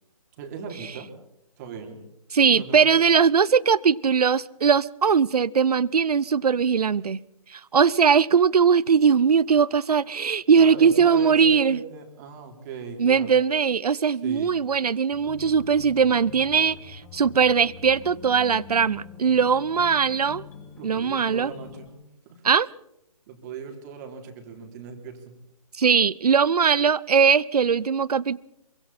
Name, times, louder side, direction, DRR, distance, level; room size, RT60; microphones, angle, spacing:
voice 1, 0.4-1.1 1.6-2.0 2.5-3.1 10.6-13.4 14.2-14.5 20.8-21.9 22.3-22.4 23.3-25.3, right 6 dB, 30° right, 3.6 m, -38 dB
voice 2, 2.3-7.2 7.5-11.8 13.0-20.4 20.8-21.5 22.4-22.7 25.8-28.4, right 6 dB, 80° right, 0.7 m, -20 dB
sound 1, 15.1-21.9, left 6 dB, 10° left, 5.2 m, -44 dB
26.5 x 24.0 x 4.3 m
hypercardioid pair, 155°, 20 cm